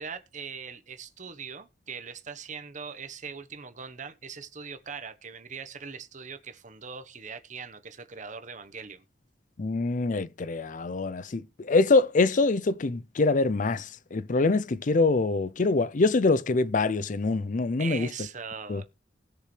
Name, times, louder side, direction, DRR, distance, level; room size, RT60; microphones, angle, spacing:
voice 1, 0.0-9.0 17.8-18.9, right 5 dB, 45° right, 1.2 m, -41 dB
voice 2, 9.6-18.1 18.7-18.8, left 3 dB, 45° left, 0.5 m, -24 dB
19.5 x 6.6 x 3.3 m
head